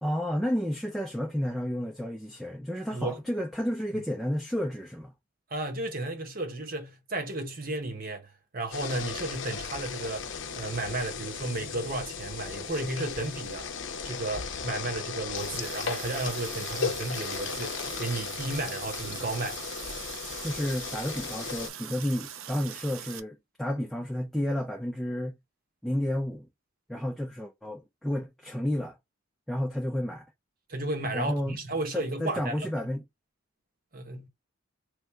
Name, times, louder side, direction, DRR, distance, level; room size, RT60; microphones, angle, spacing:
voice 1, 0.0-5.1 20.4-25.3 25.8-26.5 26.9-28.9 29.5-30.2 31.1-31.6 31.9-33.0, equal, ahead, 0.5 m, -31 dB
voice 2, 5.5-8.3 8.5-13.7 14.0-19.6 30.7-32.9 33.9-34.3, right 2 dB, 45° right, 0.9 m, -33 dB
sound 1, 8.7-21.7, left 6 dB, 60° left, 0.6 m, -36 dB
Water tap faucet, 15.4-23.2, right 9 dB, 80° right, 0.5 m, -42 dB
3.1 x 2.5 x 4.4 m
head